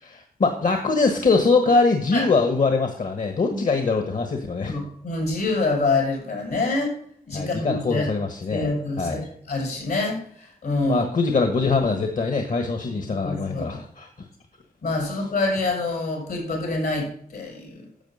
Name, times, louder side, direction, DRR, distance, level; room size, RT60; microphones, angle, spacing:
voice 1, 0.0-4.8 7.3-8.7 9.0-9.2 10.8-14.1, left 4 dB, 55° left, 5 dB, 1.4 m, -22 dB
voice 2, 4.7-7.0 7.3-8.1 8.5-9.2 9.5-11.1 13.0-13.8 14.8-17.8, left 3 dB, 80° left, 0 dB, 5.7 m, -26 dB
11.0 x 7.2 x 5.5 m, 0.63 s
cardioid pair, 75°, 16 cm